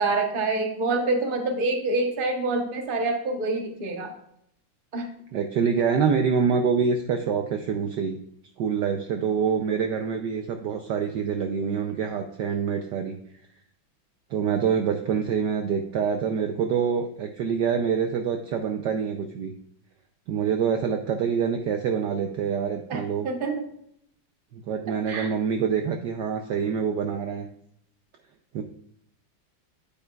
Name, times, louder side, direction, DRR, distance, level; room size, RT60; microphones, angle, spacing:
voice 1, 0.0-4.1 4.9-5.1 22.9-23.6 25.1-25.3, right 3 dB, 45° right, 3 dB, 0.7 m, -26 dB
voice 2, 5.3-8.2 8.6-13.2 14.3-19.5 20.3-23.3 24.5-27.5 28.5-28.6, right 6 dB, 75° right, 5 dB, 1.0 m, -26 dB
8.7 x 8.3 x 2.3 m, 0.71 s
omnidirectional pair, 2.4 m